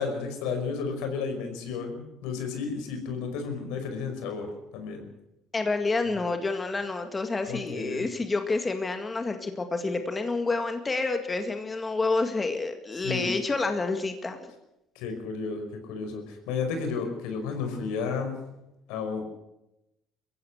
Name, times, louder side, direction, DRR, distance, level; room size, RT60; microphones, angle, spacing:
voice 1, 0.0-5.0 7.4-8.0 13.0-13.3 15.0-18.4 18.9-19.3, left 5 dB, 85° left, 5 dB, 5.2 m, -32 dB
voice 2, 5.5-14.5, left 3 dB, 20° left, 6 dB, 2.0 m, -29 dB
22.0 x 15.5 x 8.1 m, 0.90 s
cardioid pair, 100°, 0 cm